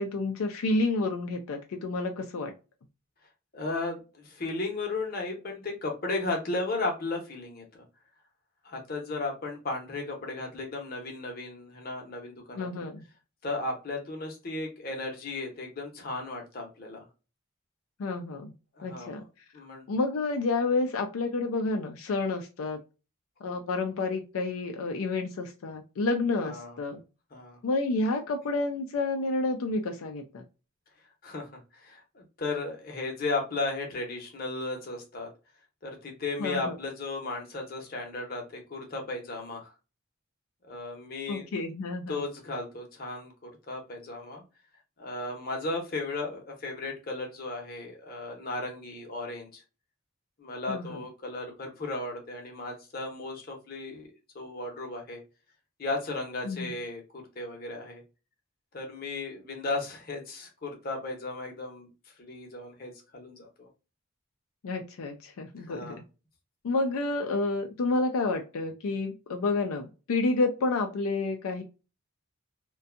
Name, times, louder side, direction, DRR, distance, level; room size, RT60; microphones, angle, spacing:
voice 1, 0.0-2.5 12.6-13.0 18.0-18.5 18.8-19.2 19.9-22.8 23.4-27.0 27.6-30.4 36.4-36.8 41.3-42.2 50.7-51.0 56.4-56.7 64.6-65.9 66.6-71.6, left 3 dB, 80° left, 4 dB, 0.4 m, -29 dB
voice 2, 3.5-7.8 8.6-12.9 13.4-17.1 18.8-19.1 19.5-19.8 26.4-26.7 27.3-27.6 31.2-35.3 35.8-39.7 40.7-41.5 42.1-44.4 45.0-49.6 50.4-55.2 55.8-58.0 58.7-61.9 62.2-63.7 65.6-66.0, left 3 dB, 45° left, 1 dB, 0.8 m, -35 dB
2.6 x 2.2 x 2.4 m, 0.31 s
head